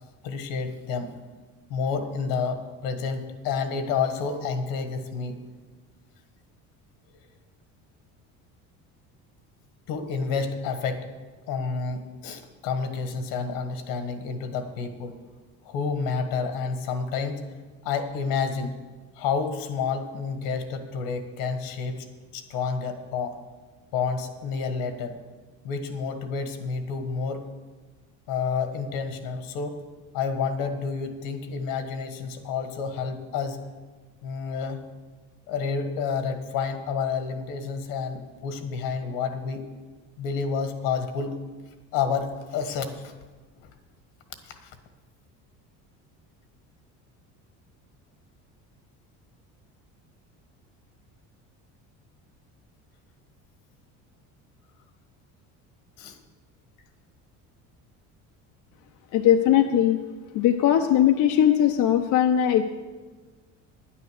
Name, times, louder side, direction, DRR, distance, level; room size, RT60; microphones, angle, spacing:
voice 1, 0.2-1.1 1.7-5.4 9.9-11.1 11.5-15.2 15.6-17.5 17.8-18.8 19.1-22.0 22.3-23.4 23.9-25.2 25.6-27.4 28.3-29.8 30.1-33.6 34.2-34.9 35.5-39.7 40.2-41.4 41.9-43.1 44.4-44.7 56.0-56.2, left 5 dB, 85° left, 8 dB, 1.6 m, -29 dB
voice 2, 59.1-60.0 60.3-62.6, left 10 dB, 60° left, 4 dB, 0.7 m, -20 dB
10.0 x 9.5 x 6.6 m, 1.3 s
cardioid pair, 130°, 34 cm